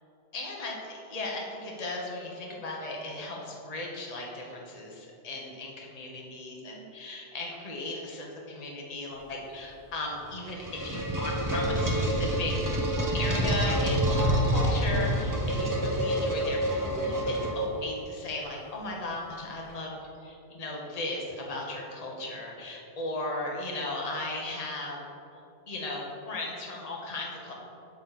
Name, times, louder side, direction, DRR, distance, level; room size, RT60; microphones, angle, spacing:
voice 1, 0.3-12.5 12.8-19.9 20.2-25.0 25.7-27.5, left 2 dB, 35° left, -2 dB, 1.1 m, -36 dB
sound 1, 10.2-18.0, right 1 dB, 20° right, 0.7 m, -27 dB
8.4 x 6.3 x 4.1 m, 2.8 s
omnidirectional pair, 1.2 m